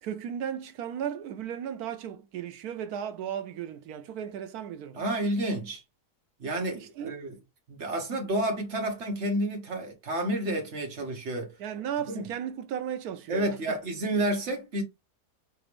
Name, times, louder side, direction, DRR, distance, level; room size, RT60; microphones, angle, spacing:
voice 1, 0.0-5.0 6.7-7.1 11.6-13.8, right 9 dB, 75° right, 1.1 m, -35 dB
voice 2, 4.9-5.8 6.4-7.4 7.7-11.5 12.1-12.3 13.3-14.8, right 1 dB, 50° right, 1.3 m, -30 dB
3.7 x 3.4 x 3.4 m
omnidirectional pair, 1.7 m